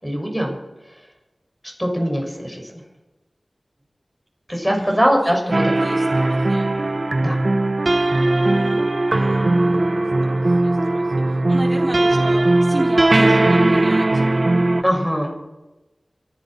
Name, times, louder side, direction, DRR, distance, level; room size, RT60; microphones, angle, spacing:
voice 1, 0.0-0.5 1.8-2.7 4.5-5.7 7.2-7.4 14.8-15.5, equal, ahead, 1 dB, 6.5 m, -21 dB
voice 2, 4.6-5.4 5.8-6.8 8.3-9.5 10.2-14.2, right 1 dB, 35° right, -3 dB, 3.7 m, -33 dB
sound 1, 5.5-14.8, right 2 dB, 60° right, 1.0 m, -18 dB
27.0 x 11.5 x 4.5 m, 1.1 s
wide cardioid pair, 40°, 0 cm